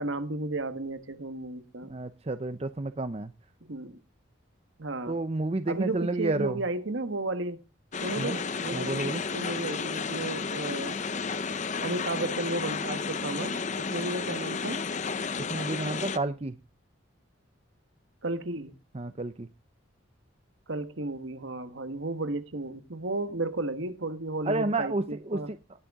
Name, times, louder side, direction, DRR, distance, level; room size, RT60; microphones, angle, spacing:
voice 1, 0.0-1.9 3.6-4.0 4.8-5.2 5.7-7.6 8.0-11.0 11.8-13.6 13.9-14.8 18.2-18.7 20.7-25.5, right 2 dB, 70° right, 1.4 m, -33 dB
voice 2, 1.9-3.3 5.1-6.6 8.2-8.4 8.7-9.2 15.5-16.6 18.9-19.5 24.5-25.0 25.3-25.6, right 2 dB, 30° right, 0.6 m, -30 dB
sound 1, 7.9-16.2, left 5 dB, 35° left, 0.6 m, -32 dB
19.0 x 6.7 x 3.6 m
head